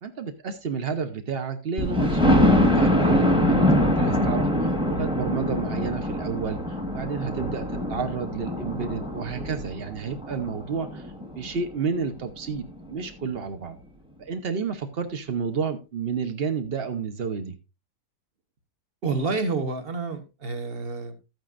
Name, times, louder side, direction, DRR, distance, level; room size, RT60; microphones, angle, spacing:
voice 1, 0.0-6.6 6.9-13.8 14.2-17.5, right 5 dB, 70° right, 8 dB, 0.5 m, -31 dB
Thunder, 1.8-11.5 12.1-12.2 12.6-12.7 12.9-13.0, left 1 dB, 5° right, 1.1 m, -24 dB
voice 2, 19.0-21.2, right 4 dB, 35° right, 9 dB, 1.1 m, -28 dB
13.0 x 9.3 x 2.5 m, 0.27 s
omnidirectional pair, 2.4 m